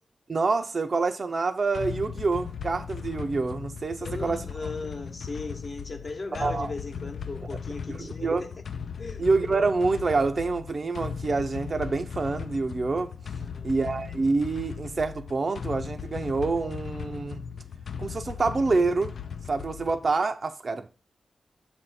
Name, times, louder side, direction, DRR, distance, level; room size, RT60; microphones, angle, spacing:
voice 1, 0.3-4.4 6.4-6.7 8.2-8.4 9.2-13.1 13.6-17.4 18.0-19.1 19.5-20.9, right 3 dB, 50° right, 0.4 m, -26 dB
sound 1, 1.7-20.2, left 6 dB, 75° left, 0.3 m, -38 dB
voice 2, 4.0-8.6 9.0-9.3 13.4-13.7, left 3 dB, 55° left, 1.0 m, -37 dB
7.1 x 2.6 x 5.6 m
cardioid pair, 70°, 0 cm